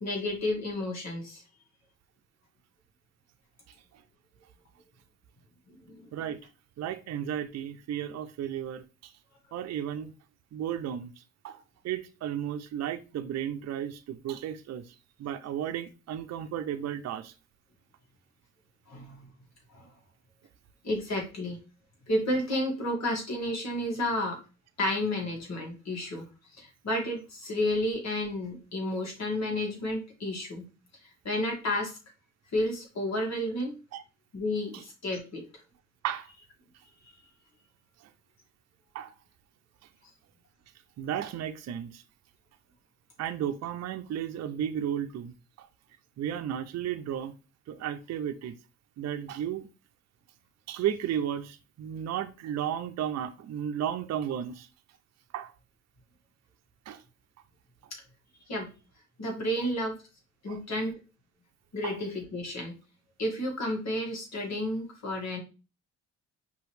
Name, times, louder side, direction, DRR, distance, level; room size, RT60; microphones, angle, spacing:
voice 1, 0.0-1.4 5.9-6.1 18.9-19.2 19.7-19.9 20.8-21.6 22.1-24.4 24.8-26.3 26.5-30.7 31.2-31.9 32.5-33.7 34.3-35.4 37.1-37.2 58.5-58.7 59.2-60.0 60.4-61.0 61.7-62.7 63.2-65.4, left 1 dB, 60° left, 2.1 m, -31 dB
voice 2, 6.8-9.1 9.5-10.1 10.5-17.3 33.9-34.0 34.7-34.8 36.0-36.3 38.9-39.1 41.0-42.0 43.2-45.7 46.2-47.3 47.7-48.5 49.0-49.7 50.7-54.7 55.3-55.5 56.9-57.0 60.5-60.6 61.8-62.0, right 10 dB, 60° right, 0.6 m, -34 dB
5.3 x 3.0 x 3.2 m
cardioid pair, 90°, 30 cm